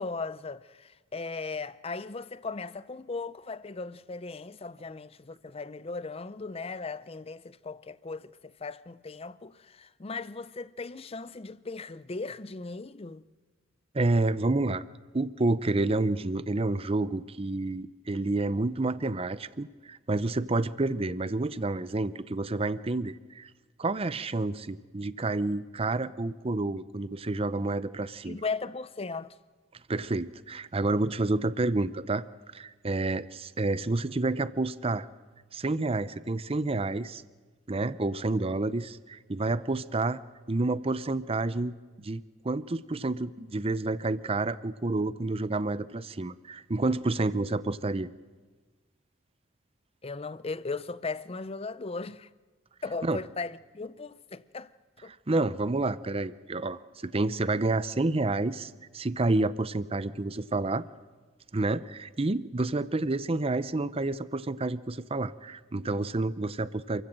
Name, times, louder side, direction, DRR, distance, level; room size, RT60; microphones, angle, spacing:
voice 1, 0.0-13.2 28.2-29.4 50.0-52.3 52.8-54.7 55.0-55.1, left 4 dB, 30° left, 0.6 m, -37 dB
voice 2, 13.9-14.8 15.1-23.5 23.8-28.4 29.9-32.3 32.5-35.1 35.5-37.2 37.7-40.2 40.5-48.1 53.0-53.2 55.3-60.8 61.5-67.0, right 2 dB, 30° right, 0.6 m, -29 dB
28.0 x 15.5 x 7.6 m
head